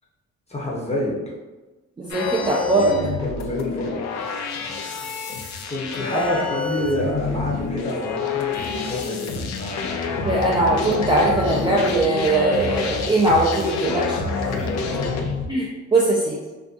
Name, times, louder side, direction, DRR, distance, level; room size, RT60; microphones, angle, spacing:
voice 1, 0.5-1.1 3.2-4.0 5.7-10.3 14.5-15.3, left 1 dB, 20° left, -4 dB, 0.8 m, -29 dB
voice 2, 2.0-3.0 6.1-6.4 10.3-14.2 15.5-16.4, right 2 dB, 15° right, -4 dB, 0.4 m, -20 dB
sound 1, 2.1-15.5, left 4 dB, 65° left, 0.4 m, -27 dB
2.5 x 2.5 x 2.4 m, 1.2 s
cardioid pair, 90°, 30 cm